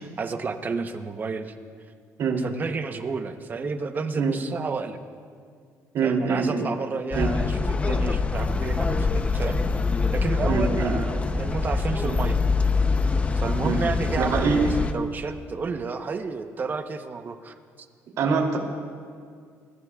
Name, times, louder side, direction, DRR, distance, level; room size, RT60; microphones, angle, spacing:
voice 1, 0.0-1.5 2.4-5.0 6.0-9.6 10.1-12.4 13.4-17.5, right 4 dB, 30° right, 7 dB, 1.0 m, -31 dB
voice 2, 5.9-6.7 7.1-7.3 10.5-11.0 13.6-13.8 14.2-14.6 18.2-18.6, right 5 dB, 65° right, 0 dB, 3.0 m, -24 dB
sound 1, 7.1-14.9, left 4 dB, 20° left, 0.7 m, -24 dB
29.0 x 15.0 x 2.4 m, 2.2 s
cardioid pair, 125°, 6 cm